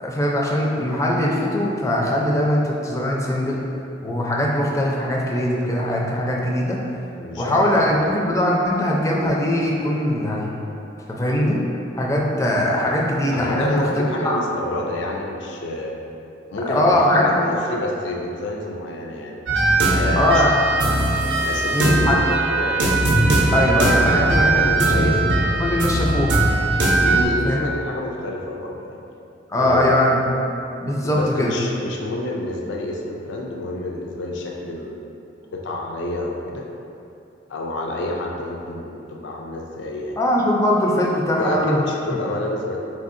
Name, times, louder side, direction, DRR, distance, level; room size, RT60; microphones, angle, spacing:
voice 1, 0.0-3.6 4.0-6.8 7.4-10.5 11.1-11.6 12.0-14.4 16.7-17.5 20.2-20.6 21.7-22.2 23.5-25.2 25.6-26.4 27.4-27.6 29.5-30.3 30.8-31.5 40.2-41.8 42.1-42.2, left 1 dB, 15° left, -2 dB, 0.4 m, -21 dB
voice 2, 7.2-8.1 13.3-16.0 16.5-19.3 19.9-20.4 21.4-22.9 23.5-25.2 27.0-29.0 29.6-30.1 31.0-35.2 35.5-36.7 37.5-40.2 41.3-42.8, left 1 dB, 80° left, 0 dB, 0.4 m, -28 dB
sound 1, 19.5-27.2, right 2 dB, 85° right, 0.6 m, -19 dB
4.6 x 3.6 x 2.5 m, 2.8 s
head